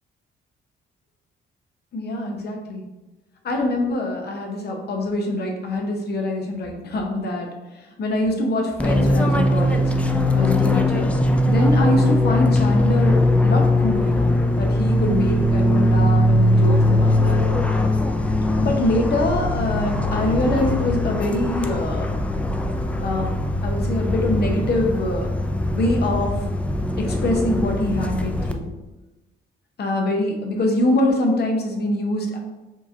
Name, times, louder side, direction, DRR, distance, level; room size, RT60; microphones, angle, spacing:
voice 1, 1.9-2.8 3.4-7.5 8.0-9.9 10.3-11.1 11.5-13.2 13.4-17.5 18.5-22.1 23.0-23.3 23.6-25.3 25.7-26.4 27.0-28.6 29.8-32.4, left 1 dB, 55° left, 2 dB, 0.8 m, -24 dB
Fixed-wing aircraft airplane, 8.8-28.5, left 1 dB, 5° left, 0.3 m, -20 dB
4.6 x 3.0 x 2.7 m, 1.1 s
cardioid pair, 90°, 20 cm